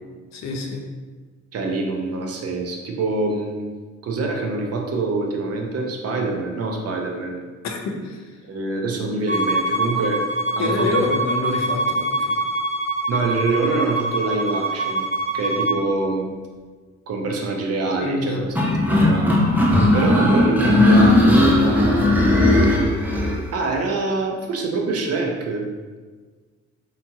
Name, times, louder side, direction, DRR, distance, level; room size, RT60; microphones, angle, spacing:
voice 1, 0.3-0.8 7.6-8.4 10.6-12.4 18.0-18.4 18.7-18.8, left 4 dB, 65° left, 2 dB, 0.5 m, -27 dB
voice 2, 1.5-3.7 4.0-7.4 8.4-10.2 10.6-11.0 13.1-15.1 15.3-16.3 17.1-18.6 18.9-19.4 19.9-22.3 23.5-25.7, right 3 dB, 55° right, 1 dB, 0.5 m, -25 dB
Bowed string instrument, 9.3-15.8, right 2 dB, 40° left, 0.9 m, -24 dB
sound 1, 18.6-23.4, left 1 dB, 5° right, 0.4 m, -16 dB
2.9 x 2.7 x 2.3 m, 1.4 s
cardioid pair, 90°, 30 cm